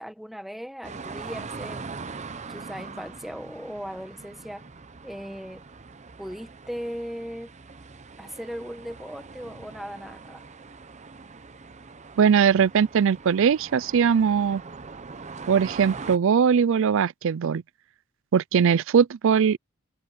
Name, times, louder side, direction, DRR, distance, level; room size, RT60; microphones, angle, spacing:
voice 1, 0.0-1.9 2.3-4.7 5.0-5.6 6.2-7.5 8.2-10.4, equal, ahead, 1.4 m, -38 dB
sound 1, 0.8-16.2, right 4 dB, 35° right, 0.8 m, -42 dB
voice 2, 12.2-14.6 15.5-17.6 18.3-19.6, right 7 dB, 65° right, 0.4 m, -20 dB
head